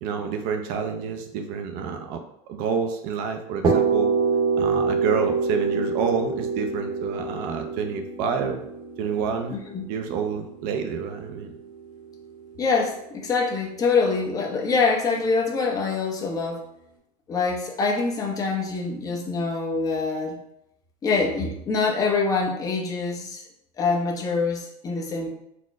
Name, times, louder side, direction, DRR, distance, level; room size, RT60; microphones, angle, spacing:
voice 1, 0.0-2.2 2.5-4.1 4.6-8.6 9.0-9.6 9.9-11.5, right 6 dB, 50° right, 5 dB, 0.5 m, -28 dB
sound 1, 3.6-11.4, right 4 dB, 25° right, 0.8 m, -25 dB
voice 2, 9.5-9.8 12.6-16.6 17.3-20.4 21.0-23.4 23.8-25.3, left 4 dB, 20° left, 0 dB, 0.7 m, -25 dB
4.2 x 2.1 x 4.5 m, 0.79 s
supercardioid pair, 155°, 18 cm